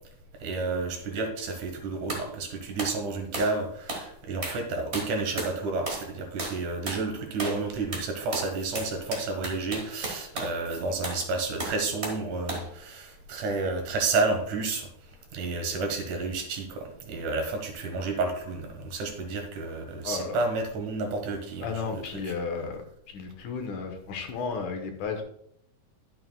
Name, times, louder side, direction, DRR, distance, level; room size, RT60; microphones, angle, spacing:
voice 1, 0.4-14.9 15.3-22.3, right 3 dB, 75° right, 4 dB, 2.7 m, -31 dB
sound 1, 2.1-2.3 2.8-3.0 3.3-3.6 3.9-4.1 4.4-4.6 4.9-5.6 5.9-6.1 6.4-6.6 6.9-7.0 7.4-7.6 7.9-10.6 11.0-11.2 11.6-12.2 12.5-12.7, right 2 dB, 40° right, 0.9 m, -34 dB
voice 2, 20.0-20.4 21.6-22.8 23.1-25.2, left 5 dB, 75° left, 5 dB, 2.4 m, -33 dB
11.5 x 7.5 x 2.2 m, 0.69 s
omnidirectional pair, 3.6 m